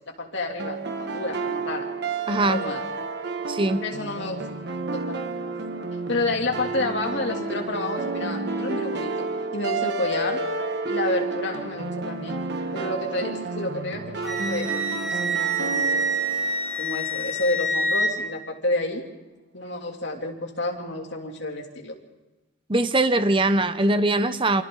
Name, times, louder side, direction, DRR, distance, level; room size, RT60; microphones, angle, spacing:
voice 1, 0.2-1.9 2.3-2.8 3.2-3.4 3.8-4.5 4.9-5.2 6.1-10.4 10.9-12.4 12.7-15.9 16.8-19.0 19.5-21.9, left 2 dB, 60° left, 1 dB, 3.1 m, -30 dB
sound 1, 0.6-17.5, right 3 dB, 55° right, 1.4 m, -31 dB
voice 2, 2.3-2.6 3.5-3.8 22.7-24.6, right 2 dB, 25° right, 10 dB, 0.8 m, -21 dB
Wind instrument woodwind instrument, 14.2-18.1, right 1 dB, ahead, 4.8 m, -26 dB
28.0 x 25.5 x 4.0 m, 1.1 s
head